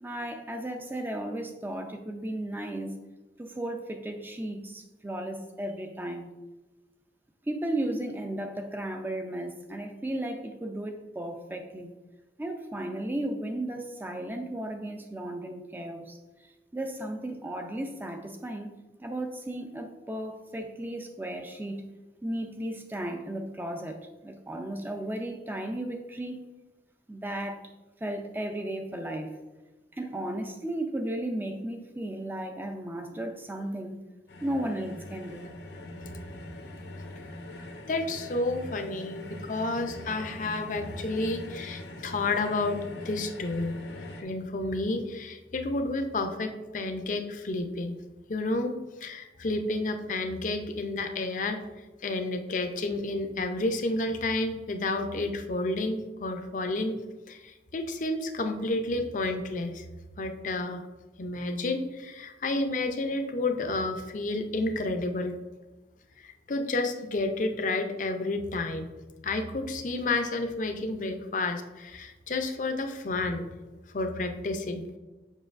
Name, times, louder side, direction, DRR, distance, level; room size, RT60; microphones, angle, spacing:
voice 1, 0.0-3.0 3.4-6.3 7.4-11.9 12.4-16.2 16.4-18.7 19.0-21.9 22.2-26.4 27.1-27.7 28.0-29.3 29.9-34.0 34.4-35.5, right 1 dB, 10° right, 4 dB, 0.4 m, -35 dB
sound 1, 34.3-44.2, left 1 dB, 75° left, 0.8 m, -42 dB
voice 2, 37.9-43.7 44.2-48.0 48.3-48.7 49.0-51.6 52.0-57.0 57.3-59.8 60.2-60.8 61.2-65.3 66.2-68.9 69.2-73.5 73.9-74.8, left 2 dB, 45° left, 6 dB, 0.5 m, -30 dB
7.3 x 5.3 x 2.5 m, 1.2 s
head